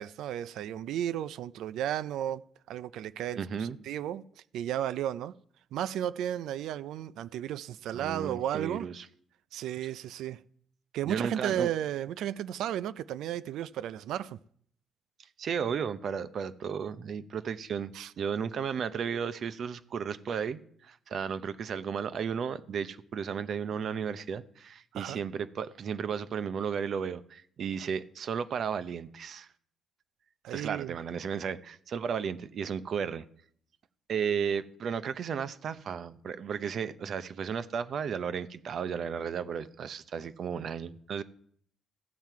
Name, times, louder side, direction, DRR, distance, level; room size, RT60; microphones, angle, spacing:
voice 1, 0.0-2.4 2.7-4.2 4.5-5.3 5.7-8.9 9.5-10.4 10.9-14.4 17.9-18.1 24.9-25.2 30.4-30.9, right 11 dB, 85° right, 0.3 m, -34 dB
voice 2, 3.4-3.8 7.9-9.1 11.1-11.7 15.4-29.5 30.5-33.2 34.1-41.2, right 7 dB, 60° right, 0.7 m, -34 dB
15.0 x 7.4 x 4.7 m
cardioid pair, 90°, 0 cm